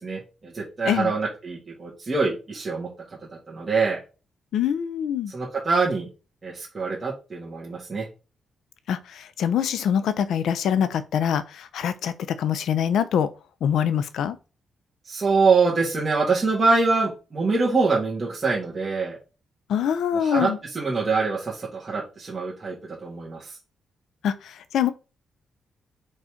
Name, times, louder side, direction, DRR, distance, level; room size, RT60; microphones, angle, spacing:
voice 1, 0.0-2.9 3.5-4.0 5.3-6.1 6.4-8.1 15.1-19.2 20.1-22.8 23.0-23.6, right 4 dB, 20° right, 2.1 m, -24 dB
voice 2, 4.5-5.3 8.9-12.1 12.4-13.3 13.6-14.4 19.7-20.6 24.2-24.9, left 8 dB, 80° left, 0.7 m, -24 dB
5.4 x 4.1 x 5.0 m
wide cardioid pair, 150°, 0 cm